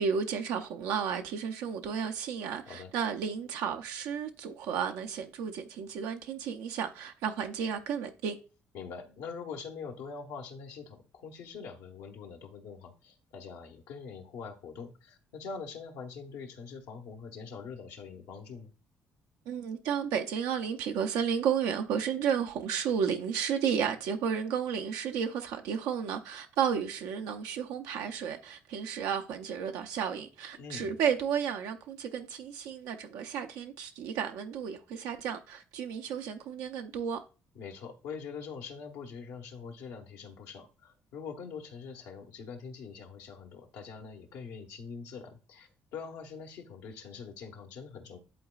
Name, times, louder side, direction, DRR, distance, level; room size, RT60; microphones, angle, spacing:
voice 1, 0.0-8.4 19.5-37.2, right 7 dB, 85° right, 0.5 m, -32 dB
voice 2, 8.7-18.7 30.6-31.0 37.5-48.2, left 5 dB, 85° left, 1.1 m, -44 dB
11.0 x 3.9 x 2.4 m
supercardioid pair, 80°, 6 cm